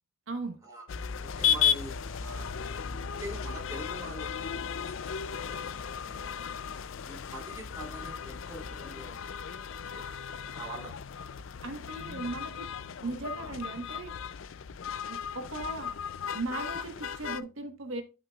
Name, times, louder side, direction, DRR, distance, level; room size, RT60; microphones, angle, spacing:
voice 1, 0.3-0.6 11.6-12.7 13.0-14.1 15.1-16.0 16.3-18.0, right 2 dB, 70° right, 1.3 m, -37 dB
sound 1, 0.9-17.4, left 8 dB, 65° left, 0.4 m, -35 dB
voice 2, 1.2-2.5 2.9-5.0 5.4-6.4 7.1-9.6 9.9-10.1 10.5-10.9, right 1 dB, 15° right, 3.0 m, -45 dB
11.5 x 5.7 x 2.4 m
head